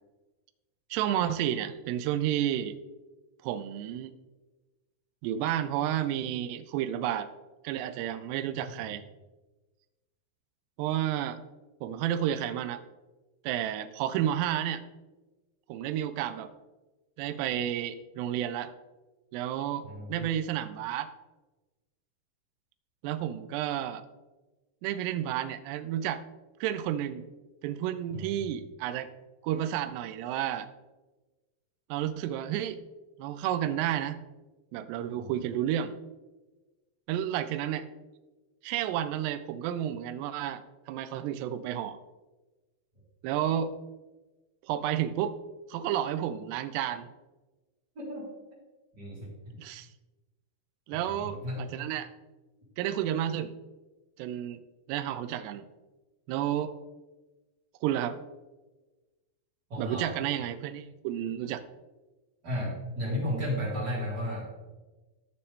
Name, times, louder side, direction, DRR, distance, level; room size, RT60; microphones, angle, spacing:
voice 1, 0.9-2.7 3.4-4.1 5.2-7.3 7.6-9.0 10.8-11.4 11.8-12.8 13.4-14.8 15.7-16.5 17.2-18.7 19.3-21.1 23.0-24.0 24.8-26.2 26.6-27.2 27.6-29.1 29.4-30.7 31.9-32.8 33.2-34.2 34.7-35.9 37.1-37.9 38.6-40.6 40.9-42.0 43.2-43.7 44.6-45.4 45.7-47.1 49.6-49.9 50.9-52.1 52.8-53.5 54.2-54.6 54.9-55.7 56.3-56.7 57.8-58.2 59.8-61.6, right 11 dB, 85° right, 11 dB, 2.7 m, -31 dB
voice 2, 8.5-8.9 19.8-20.3 28.1-28.3 35.2-35.3 48.0-48.3 48.9-49.5 50.9-51.7 59.7-60.2 62.4-64.4, equal, 25° right, -7 dB, 3.9 m, -34 dB
14.0 x 6.7 x 3.6 m, 1.2 s
omnidirectional pair, 4.8 m